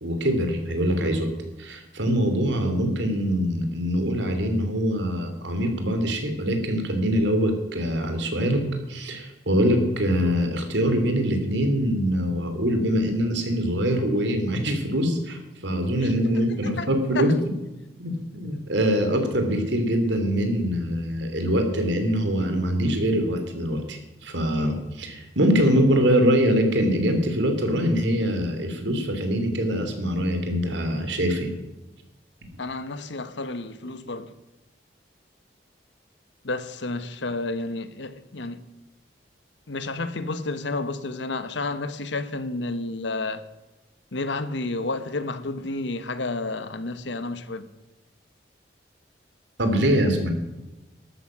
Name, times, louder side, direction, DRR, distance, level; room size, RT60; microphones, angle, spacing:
voice 1, 0.0-1.3 1.6-17.3 18.0-31.5 49.6-50.3, equal, 75° right, 2.9 m, -24 dB
voice 2, 16.5-16.9 17.1-17.3 32.6-34.3 36.4-38.7 39.7-43.4 44.1-47.7, left 2 dB, 75° left, 1.1 m, -31 dB
13.0 x 12.5 x 6.2 m
head